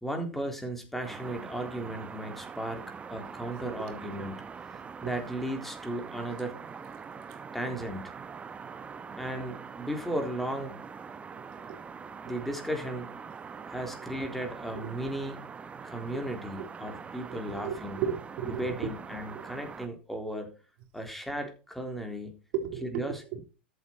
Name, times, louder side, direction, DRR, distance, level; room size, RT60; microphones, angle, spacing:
voice 1, 0.0-2.8 3.1-6.6 7.5-8.1 9.1-10.8 12.2-13.1 13.6-15.4 15.8-18.0 18.4-20.6 20.9-22.4 22.9-23.4, right 1 dB, 5° left, 4 dB, 3.7 m, -36 dB
sound 1, 1.0-19.9, right 6 dB, 20° right, 1.0 m, -43 dB
voice 2, 11.4-11.8 14.7-14.9 16.2-16.7 17.3-18.9 19.3-19.4 22.5-23.4, right 8 dB, 55° right, 5 dB, 3.6 m, -36 dB
13.5 x 8.0 x 4.6 m, 0.33 s
figure-of-eight pair, 90°, 6 cm